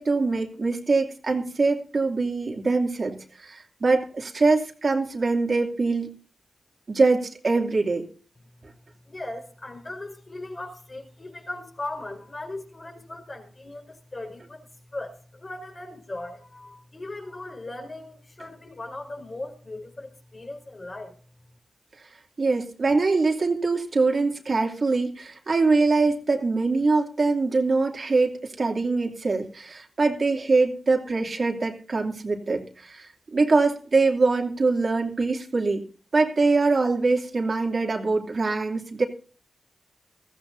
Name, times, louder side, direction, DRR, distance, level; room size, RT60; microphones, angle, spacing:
voice 1, 0.0-6.1 6.9-8.0 22.4-35.8 36.1-39.0, right 3 dB, 55° right, 1 dB, 2.7 m, -23 dB
voice 2, 9.1-21.2, left 2 dB, 45° left, 2 dB, 4.9 m, -38 dB
20.5 x 14.5 x 2.7 m, 0.39 s
cardioid pair, 50°, 0 cm